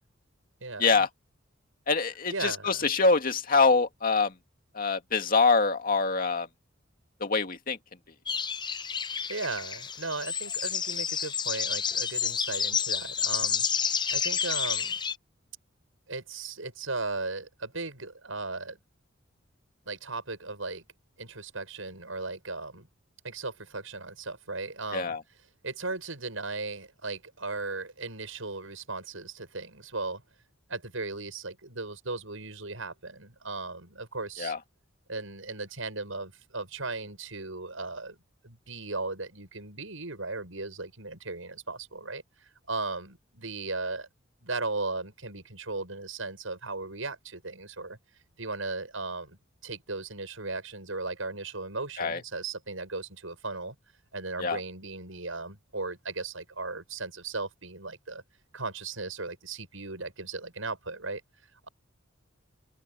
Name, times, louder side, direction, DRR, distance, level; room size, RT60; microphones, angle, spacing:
voice 1, 0.6-1.0 2.3-2.9 9.3-13.6 14.1-15.0 16.1-18.8 19.9-20.9 21.2-22.9 23.2-30.2 30.7-34.5 35.1-38.2 38.4-44.1 44.4-48.0 48.4-53.8 54.1-58.2 58.5-61.2 61.6-61.7, right 3 dB, 85° right, 7.1 m, -37 dB
voice 2, 1.9-4.3 4.8-6.5 7.2-7.8 24.9-25.2 34.4-34.6 52.0-52.2 54.4-54.6, left 4 dB, 45° left, 2.3 m, -24 dB
sound 1, 8.3-15.1, left 7 dB, 25° left, 0.6 m, -30 dB
head